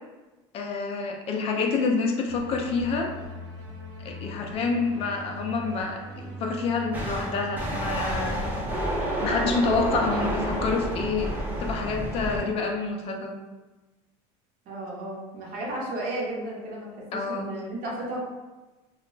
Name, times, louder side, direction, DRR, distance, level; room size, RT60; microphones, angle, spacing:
voice 1, 0.5-3.1 4.0-8.4 9.2-11.3 11.6-13.4 17.1-17.5, left 4 dB, 40° left, 3 dB, 0.4 m, -27 dB
sound 1, 2.3-10.7, right 1 dB, 85° right, 1.1 m, -40 dB
sound 2, 6.9-12.4, equal, 10° right, 0.6 m, -30 dB
voice 2, 14.7-18.2, right 1 dB, 60° right, -4 dB, 1.0 m, -34 dB
2.3 x 2.0 x 3.8 m, 1.2 s
supercardioid pair, 125°, 15 cm